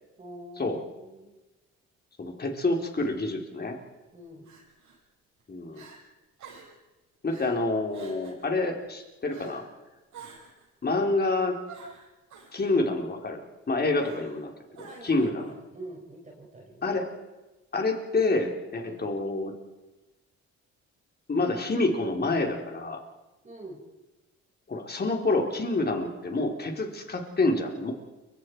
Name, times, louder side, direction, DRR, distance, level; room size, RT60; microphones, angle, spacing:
voice 1, 0.2-1.4 4.1-4.5 14.8-16.8 18.8-19.0 23.4-23.9, right 1 dB, 25° right, 0 dB, 5.2 m, -45 dB
voice 2, 2.2-3.8 5.5-5.8 7.2-9.6 10.8-11.6 12.5-13.4 13.7-14.5 14.8-15.5 16.8-17.1 17.7-19.5 21.3-23.0 24.7-27.9, left 2 dB, 30° left, 2 dB, 3.9 m, -27 dB
Crying sobbing, 2.9-3.2 4.4-5.0 5.4-5.5 5.7-6.0 6.4-6.8 7.3-7.6 7.9-8.4 9.3-9.7 10.1-10.7 11.7-12.5 14.0-14.4 14.7-15.3, right 5 dB, 75° right, 7.5 m, -49 dB
29.5 x 24.0 x 4.7 m, 1.1 s
cardioid pair, 90°, 30 cm